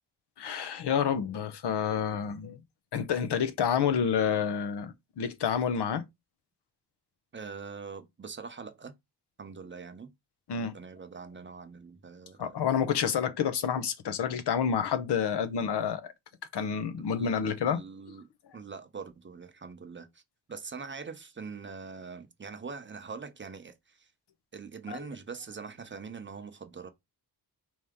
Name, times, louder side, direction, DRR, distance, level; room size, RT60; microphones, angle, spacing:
voice 1, 0.4-2.6 2.9-6.0 10.5-10.7 12.4-16.1 16.5-17.8 24.9-25.1, left 7 dB, 80° left, 0.8 m, -29 dB
voice 2, 7.3-8.9 9.4-10.1 10.5-12.5 17.2-17.3 17.7-18.3 18.5-20.2 20.5-23.7 24.5-26.9, right 5 dB, 30° right, 0.6 m, -43 dB
4.7 x 2.8 x 3.6 m
wide cardioid pair, 130°, 41 cm